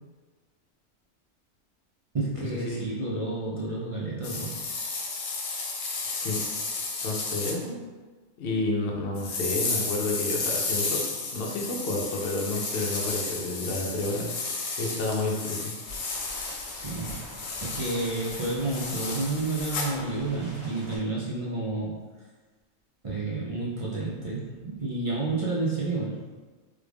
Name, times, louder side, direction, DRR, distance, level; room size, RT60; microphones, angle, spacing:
voice 1, 2.1-4.6 16.7-21.9 23.0-26.2, right 2 dB, 55° right, -6 dB, 0.3 m, -30 dB
sound 1, 4.2-7.5 9.1-19.9, left 3 dB, 80° left, 1.0 m, -33 dB
voice 2, 6.0-6.4 7.0-7.8 8.4-11.0 11.3-14.3 14.8-15.7, left 2 dB, 55° left, -1 dB, 0.7 m, -30 dB
sound 2, 15.9-21.0, left 1 dB, 80° right, 1.7 m, -45 dB
3.3 x 2.4 x 3.4 m, 1.3 s
omnidirectional pair, 1.4 m